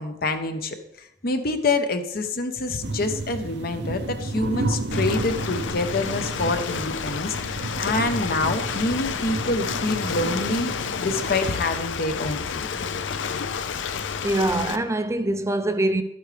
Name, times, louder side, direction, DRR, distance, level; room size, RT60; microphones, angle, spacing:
voice 1, 0.0-10.7 11.0-12.7, left 2 dB, 55° left, 0.9 m, -26 dB
sound 1, 2.8-11.6, right 2 dB, 65° right, 0.7 m, -32 dB
Ocean, 4.9-14.8, left 6 dB, 90° left, 0.5 m, -30 dB
voice 2, 14.2-16.0, right 1 dB, 15° right, 0.4 m, -23 dB
12.0 x 8.6 x 3.3 m
head